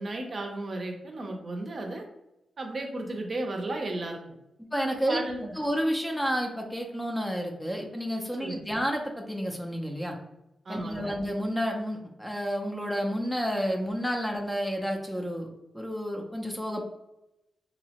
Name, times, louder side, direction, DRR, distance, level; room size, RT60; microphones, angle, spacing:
voice 1, 0.0-2.0 2.6-4.2 5.1-5.5 8.4-8.7 10.7-11.2, right 2 dB, 45° right, 2 dB, 0.5 m, -34 dB
voice 2, 4.7-5.2 5.6-10.2 10.7-15.5 15.7-16.8, equal, 5° left, 1 dB, 0.4 m, -30 dB
2.7 x 2.0 x 2.8 m, 0.90 s
cardioid pair, 80°, 0 cm